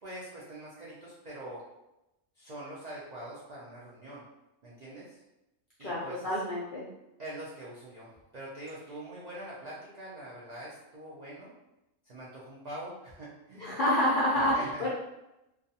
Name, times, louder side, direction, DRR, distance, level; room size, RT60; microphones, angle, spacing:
voice 1, 0.0-1.6 2.4-4.2 4.6-5.2 5.8-6.4 7.2-11.5 12.0-13.8 14.4-14.9, right 1 dB, 85° right, -7 dB, 0.3 m, -44 dB
voice 2, 5.8-6.8 13.6-14.5 14.8-14.9, left 1 dB, 70° left, -7 dB, 0.4 m, -28 dB
2.4 x 2.3 x 2.7 m, 0.92 s
omnidirectional pair, 1.5 m